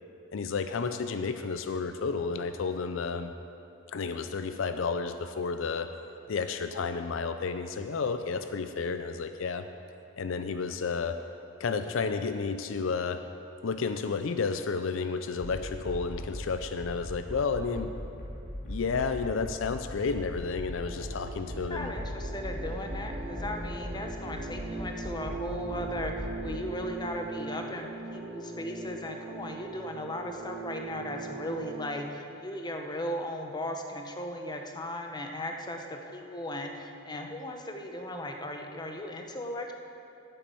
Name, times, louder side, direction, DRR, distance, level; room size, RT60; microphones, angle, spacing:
voice 1, 0.3-3.3 3.9-5.9 6.3-9.7 10.2-11.2 11.6-13.2 13.6-17.9 18.6-21.9, left 5 dB, 70° left, 9 dB, 0.5 m, -31 dB
sound 1, 15.4-26.6, left 1 dB, 45° left, 1.9 m, -40 dB
sound 2, 20.8-31.8, right 3 dB, 30° right, 0.8 m, -40 dB
voice 2, 21.5-39.7, left 1 dB, 20° left, 3 dB, 0.9 m, -37 dB
9.1 x 8.5 x 7.0 m, 2.7 s
head